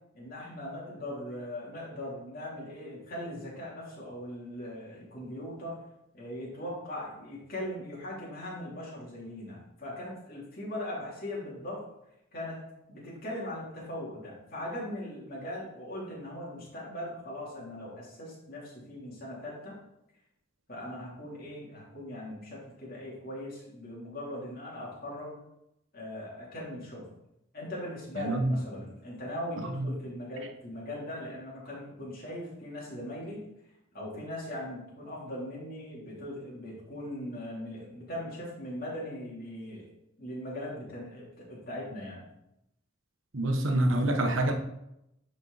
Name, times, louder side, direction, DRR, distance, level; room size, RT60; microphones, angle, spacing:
voice 1, 0.1-5.8 6.1-11.8 12.3-12.6 12.9-19.8 20.7-25.3 25.9-27.0 27.5-33.4 33.9-39.9 40.2-42.3, left 1 dB, 50° left, -5 dB, 3.1 m, -40 dB
voice 2, 28.2-28.6 29.7-29.9 43.3-44.5, right 1 dB, 85° right, 5 dB, 1.1 m, -26 dB
10.5 x 4.6 x 4.0 m, 0.83 s
head